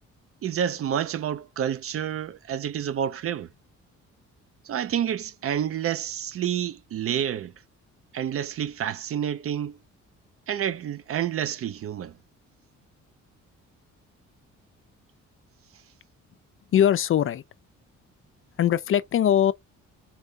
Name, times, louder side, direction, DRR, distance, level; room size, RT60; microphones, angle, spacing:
voice 1, 0.4-3.5 4.6-7.5 8.1-9.8 10.5-12.1, right 9 dB, 50° right, 0.4 m, -29 dB
voice 2, 16.7-17.4 18.6-19.5, left 10 dB, 45° left, 0.4 m, -21 dB
4.4 x 2.7 x 3.5 m
cardioid pair, 90°, 30 cm